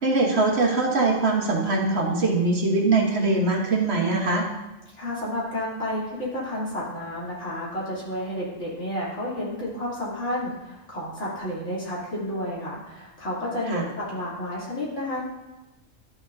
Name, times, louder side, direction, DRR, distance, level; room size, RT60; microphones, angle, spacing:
voice 1, 0.0-4.4 13.7-13.8, right 3 dB, 60° right, 0 dB, 1.5 m, -22 dB
voice 2, 5.0-15.2, left 1 dB, 70° left, -8 dB, 3.3 m, -31 dB
12.0 x 6.1 x 2.6 m, 1.1 s
omnidirectional pair, 1.3 m